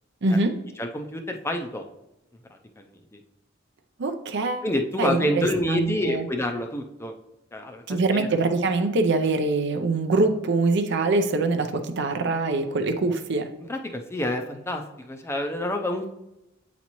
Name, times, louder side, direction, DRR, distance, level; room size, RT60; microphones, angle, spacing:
voice 1, 0.2-0.5 4.0-4.6 5.0-6.2 7.9-13.5, right 3 dB, 60° right, 6 dB, 0.6 m, -24 dB
voice 2, 0.8-1.8 2.5-3.2 4.6-7.1 7.5-8.3 13.7-16.1, left 1 dB, 15° left, 4 dB, 0.5 m, -28 dB
8.3 x 4.1 x 3.0 m, 0.90 s
head